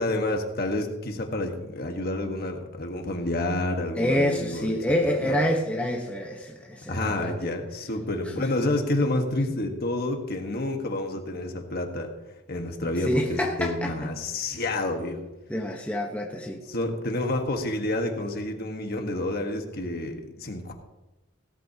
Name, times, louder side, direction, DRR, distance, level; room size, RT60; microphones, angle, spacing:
voice 1, 0.0-4.7 5.2-5.4 6.9-12.1 12.5-15.2 16.7-20.7, left 2 dB, 45° left, 4 dB, 1.5 m, -29 dB
voice 2, 4.0-7.3 13.0-14.1 15.5-16.6, left 1 dB, 5° left, 0 dB, 1.1 m, -27 dB
17.5 x 13.0 x 2.9 m, 1.0 s
head